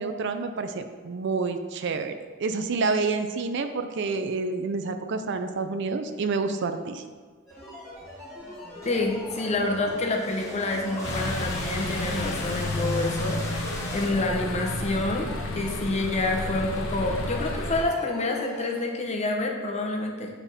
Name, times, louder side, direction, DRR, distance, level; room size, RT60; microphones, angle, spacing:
voice 1, 0.0-2.1 2.4-7.0, right 4 dB, 60° right, 8 dB, 0.5 m, -28 dB
sound 1, 7.5-18.8, equal, ahead, 1.9 m, -42 dB
sound 2, 8.3-14.1, left 1 dB, 15° left, 1.2 m, -40 dB
voice 2, 8.8-13.7 13.9-15.3 15.5-20.3, left 2 dB, 35° left, 1 dB, 0.9 m, -28 dB
sound 3, 11.0-17.8, left 1 dB, 90° left, 0.8 m, -31 dB
9.3 x 3.5 x 4.1 m, 1.5 s
head